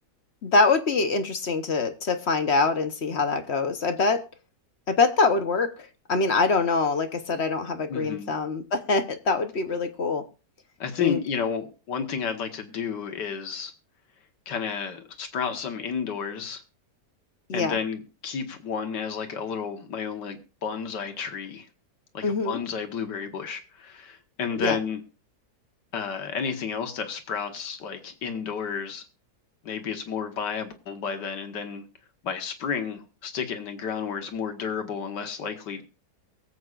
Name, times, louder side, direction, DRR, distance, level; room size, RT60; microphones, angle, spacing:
voice 1, 0.4-4.2 4.9-10.2 11.0-11.2 17.5-17.8 22.2-22.6 24.6-24.8, left 3 dB, 50° left, 9 dB, 1.0 m, -24 dB
voice 2, 7.9-8.3 10.8-13.7 14.5-16.6 17.5-21.7 22.1-25.0 25.9-29.0 29.6-31.8 32.2-35.8, left 6 dB, 90° left, 7 dB, 2.0 m, -31 dB
23.0 x 8.0 x 2.4 m, 0.32 s
omnidirectional pair, 1.8 m